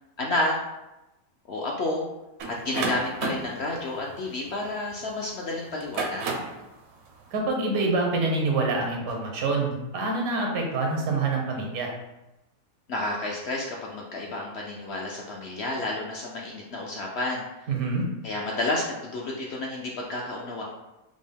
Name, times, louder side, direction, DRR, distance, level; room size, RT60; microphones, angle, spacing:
voice 1, 0.2-0.5 1.5-2.1 2.5-6.3 12.9-17.4 18.2-20.6, left 2 dB, 65° left, -2 dB, 0.7 m, -30 dB
sound 1, 2.4-5.1 5.7-6.6, right 3 dB, 60° right, 0.8 m, -32 dB
voice 2, 7.3-11.9 17.7-18.0, right 3 dB, 80° right, 1 dB, 1.3 m, -26 dB
5.1 x 2.0 x 3.4 m, 0.97 s
omnidirectional pair, 1.5 m